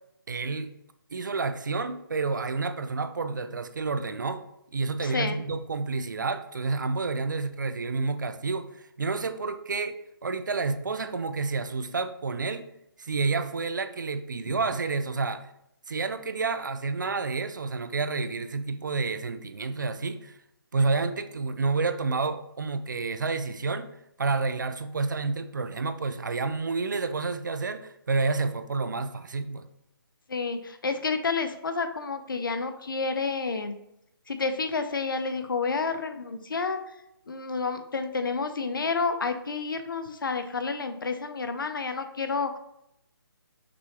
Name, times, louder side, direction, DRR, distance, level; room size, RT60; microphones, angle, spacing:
voice 1, 0.3-0.7 1.1-4.4 4.7-12.7 13.0-15.5 15.9-20.4 20.7-29.6, right 4 dB, 55° right, 11 dB, 0.4 m, -29 dB
voice 2, 5.0-5.4 30.3-33.7 34.3-36.8 37.3-42.6, left 4 dB, 60° left, 8 dB, 0.6 m, -30 dB
6.0 x 3.1 x 2.9 m, 0.80 s
hypercardioid pair, 175°, 13 cm